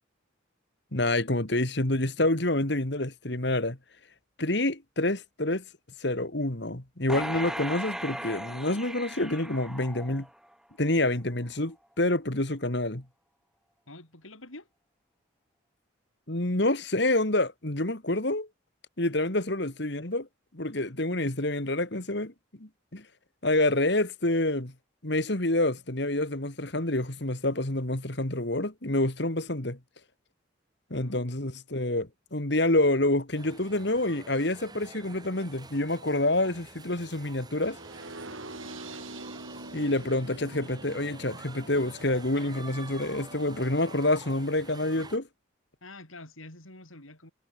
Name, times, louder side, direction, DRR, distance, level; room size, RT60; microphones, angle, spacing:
voice 1, 0.9-3.8 4.4-5.6 6.0-10.3 10.8-13.0 16.3-18.5 19.0-20.3 20.5-22.3 22.6-23.0 23.4-24.7 25.0-29.8 30.9-37.8 39.7-45.3, left 1 dB, 55° left, 2.4 m, -27 dB
sound 1, 7.1-10.5 11.0-11.1, equal, 5° right, 1.9 m, -37 dB
voice 2, 13.9-14.7 30.9-31.3 44.9-45.1 45.8-47.3, left 2 dB, 85° left, 7.4 m, -47 dB
sound 2, 33.3-45.2, right 3 dB, 20° right, 6.2 m, -48 dB
sound 3, 37.6-43.6, right 2 dB, 80° right, 7.6 m, -45 dB
head